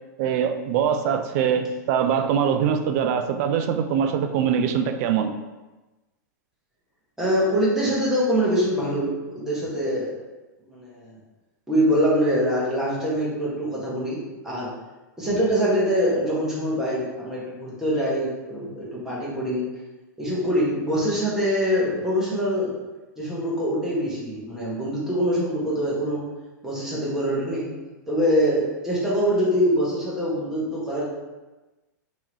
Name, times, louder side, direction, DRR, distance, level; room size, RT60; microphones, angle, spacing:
voice 1, 0.2-5.4, right 8 dB, 50° right, 7 dB, 0.4 m, -23 dB
voice 2, 7.2-10.1 10.7-11.1 11.7-14.2 14.4-14.7 15.2-19.6 20.2-22.7 23.2-26.2 26.6-27.7 28.1-31.0, equal, 5° right, -7 dB, 1.4 m, -24 dB
3.5 x 3.1 x 3.0 m, 1.1 s
hypercardioid pair, 120°, 10 cm